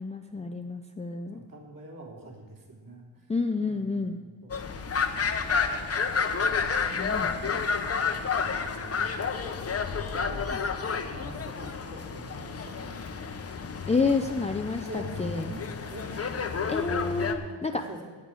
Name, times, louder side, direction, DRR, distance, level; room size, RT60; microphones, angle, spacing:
voice 1, 0.0-1.4 3.3-4.2 6.9-7.4 10.5-10.6 13.9-15.5 16.7-17.8, left 4 dB, 15° left, 5 dB, 0.4 m, -29 dB
voice 2, 1.3-3.3 3.5-4.6 7.2-9.2 10.3-13.0 14.9-16.7 17.2-18.0, right 1 dB, 40° right, -2 dB, 3.3 m, -46 dB
sound 1, 4.5-17.3, left 5 dB, 30° left, 0.8 m, -30 dB
17.0 x 8.4 x 4.8 m, 1.4 s
cardioid pair, 125°, 48 cm